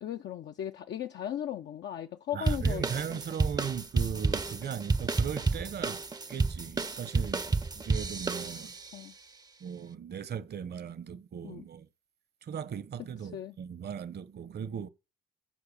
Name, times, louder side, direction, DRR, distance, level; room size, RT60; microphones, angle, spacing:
voice 1, 0.0-2.8 8.9-9.1 11.4-11.6 13.3-13.5, left 10 dB, 65° left, 0.6 m, -37 dB
voice 2, 2.3-8.8 9.6-11.9 12.4-14.9, right 8 dB, 55° right, 1.1 m, -38 dB
sound 1, 2.5-8.9, right 3 dB, 20° right, 0.6 m, -30 dB
13.5 x 4.8 x 6.7 m
cardioid pair, 90°, 20 cm